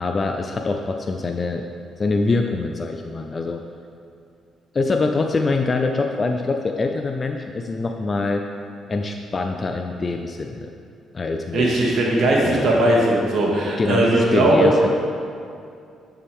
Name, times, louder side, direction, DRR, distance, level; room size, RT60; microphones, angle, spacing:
voice 1, 0.0-1.6 2.0-3.6 4.7-8.4 8.9-10.7 11.1-11.7 12.4-12.7 13.8-14.9, left 3 dB, 35° left, 4 dB, 0.5 m, -24 dB
voice 2, 11.5-14.7, right 1 dB, 70° right, -3 dB, 2.0 m, -18 dB
10.0 x 6.9 x 3.6 m, 2.4 s
cardioid pair, 90°, 0 cm